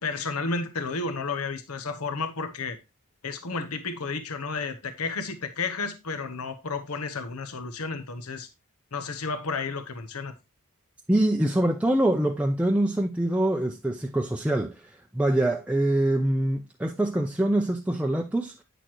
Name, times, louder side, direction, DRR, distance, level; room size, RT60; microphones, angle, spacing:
voice 1, 0.0-2.8 3.2-8.5 8.9-10.3, left 4 dB, 75° left, 0.9 m, -32 dB
voice 2, 11.1-18.6, right 1 dB, 5° right, 0.5 m, -24 dB
9.1 x 6.6 x 3.0 m
head